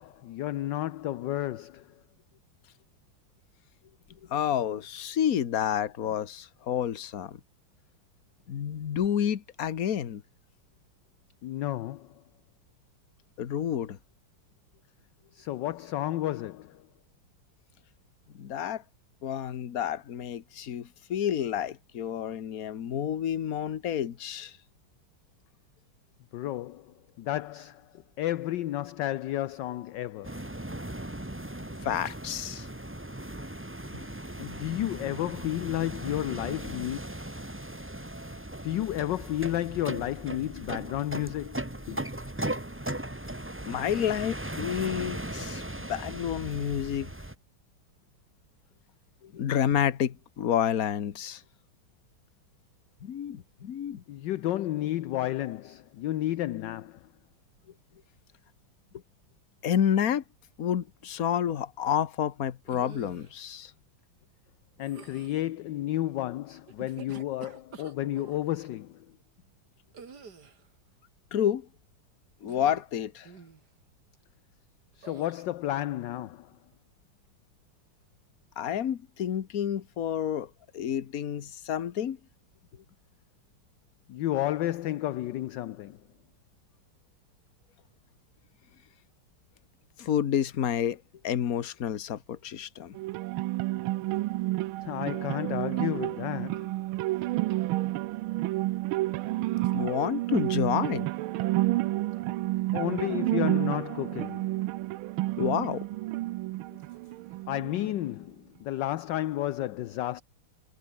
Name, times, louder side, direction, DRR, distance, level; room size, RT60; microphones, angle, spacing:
voice 1, 0.0-1.9 11.4-12.1 15.3-16.8 26.3-27.9 28.2-30.4 34.4-37.0 38.6-42.0 54.1-57.0 64.8-69.1 74.9-76.5 84.1-86.0 94.8-96.7 102.7-104.5 107.5-110.2, left 14 dB, 65° left, 1.3 m, -32 dB
voice 2, 4.3-7.4 8.5-10.2 13.4-14.0 18.3-18.8 19.2-24.6 31.8-32.7 33.9-34.0 43.6-47.1 49.2-51.4 53.0-54.0 59.6-60.2 60.6-63.7 71.3-71.7 72.4-73.3 78.6-82.2 90.0-93.0 99.7-101.1 105.4-105.9, left 9 dB, 50° left, 1.5 m, -29 dB
sound 1, 30.2-47.4, right 1 dB, 5° right, 1.3 m, -38 dB
sound 2, 62.7-63.3 64.8-65.4 66.7-68.4 69.9-70.7 72.4-72.9 73.2-73.6 75.0-75.5, right 5 dB, 50° right, 2.8 m, -48 dB
sound 3, 93.0-107.9, right 18 dB, 80° right, 1.4 m, -30 dB
omnidirectional pair, 2.3 m